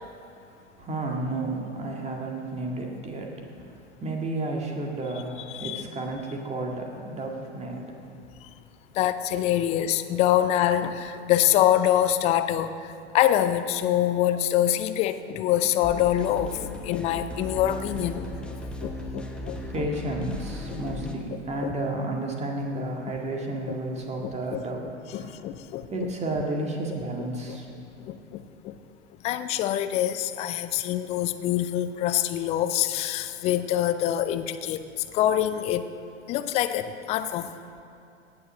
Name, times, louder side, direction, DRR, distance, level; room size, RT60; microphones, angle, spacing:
voice 1, 0.8-3.3 3.6-7.9 19.7-24.9 25.1-25.3 25.9-27.7, right 2 dB, 20° right, 1 dB, 1.9 m, -32 dB
voice 2, 5.5-5.9 9.0-12.7 13.1-19.9 20.7-20.8 21.6-21.7 24.2-25.9 27.5-27.6 28.1-28.7 29.2-34.8 35.1-35.9 36.3-37.5, left 11 dB, 20° left, 11 dB, 0.4 m, -25 dB
sound 1, 15.8-21.1, left 1 dB, 5° left, 1.0 m, -37 dB
18.0 x 7.1 x 6.3 m, 2.6 s
figure-of-eight pair, 95°, 36 cm